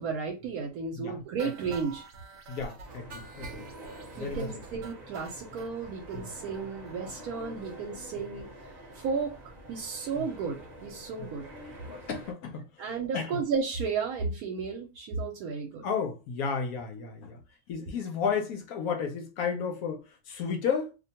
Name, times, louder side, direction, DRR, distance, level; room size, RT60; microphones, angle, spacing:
voice 1, 0.0-2.1 4.2-8.5 8.9-9.4 9.7-11.5 12.8-15.9, right 5 dB, 85° right, 1.1 m, -33 dB
voice 2, 1.0-1.5 2.5-3.7 4.1-4.6 6.1-6.3 10.2-10.3 11.9-13.4 15.8-17.4 17.7-20.9, left 6 dB, 75° left, 1.1 m, -33 dB
sound 1, 1.4-5.7 6.1-6.2 6.5-6.6 6.9-7.0 7.3-7.4, right 3 dB, 65° right, 1.0 m, -46 dB
sound 2, 2.8-12.3, right 1 dB, 40° right, 0.7 m, -47 dB
2.6 x 2.2 x 2.7 m
omnidirectional pair, 1.5 m